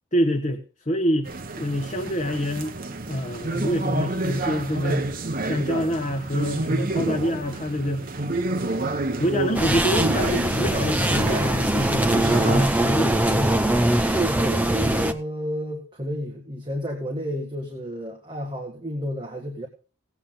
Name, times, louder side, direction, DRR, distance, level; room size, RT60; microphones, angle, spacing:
voice 1, 0.1-2.7 3.1-5.1 5.4-8.1 9.2-13.6, equal, 35° left, 4 dB, 1.1 m, -26 dB
sound 1, 1.2-12.6, right 2 dB, 40° right, 0.9 m, -29 dB
sound 2, 9.5-15.1, right 1 dB, 5° right, 0.6 m, -22 dB
voice 2, 14.1-19.7, equal, 20° right, 0 dB, 1.7 m, -31 dB
17.0 x 8.4 x 3.8 m, 0.37 s
head